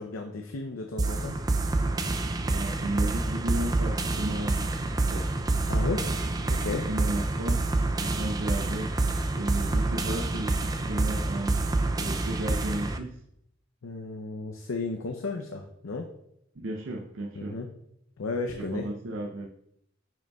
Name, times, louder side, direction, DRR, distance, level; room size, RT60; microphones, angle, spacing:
voice 1, 0.0-1.3 5.7-6.0 6.4-6.8 13.8-16.1 17.4-17.7 18.2-18.8, left 3 dB, 90° left, 4 dB, 0.6 m, -34 dB
sound 1, 1.0-13.0, right 2 dB, 20° right, 0.3 m, -27 dB
voice 2, 2.5-5.3 6.7-7.7 8.0-9.0 9.3-13.2 16.5-17.6 18.5-19.5, right 1 dB, 70° right, 0 dB, 0.6 m, -35 dB
9.2 x 5.1 x 2.3 m, 0.77 s
head